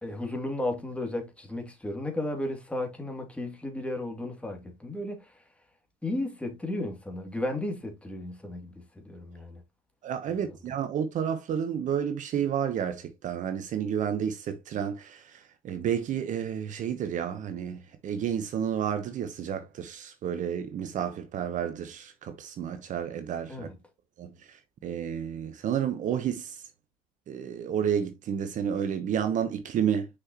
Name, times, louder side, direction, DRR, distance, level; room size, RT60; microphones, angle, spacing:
voice 1, 0.0-5.3 6.0-9.6 23.5-23.7, left 1 dB, 5° left, 2.5 m, -34 dB
voice 2, 10.0-23.7 24.2-24.6 24.8-26.6 27.3-30.1, right 8 dB, 45° right, 1.0 m, -31 dB
6.5 x 5.7 x 2.9 m
hypercardioid pair, 70°, 18 cm